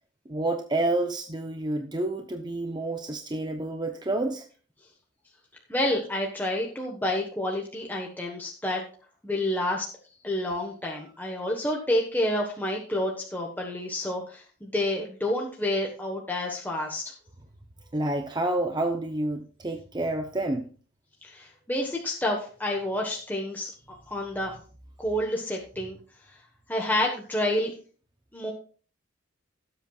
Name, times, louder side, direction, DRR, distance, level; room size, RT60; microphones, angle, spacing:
voice 1, 0.3-4.5 17.9-20.7, right 2 dB, 20° right, 0.7 m, -29 dB
voice 2, 5.7-8.8 9.2-9.9 10.2-17.0 21.2-24.5 25.0-26.0 26.7-27.7 28.3-28.5, left 1 dB, 10° left, 1.2 m, -29 dB
17.5 x 7.8 x 2.4 m
head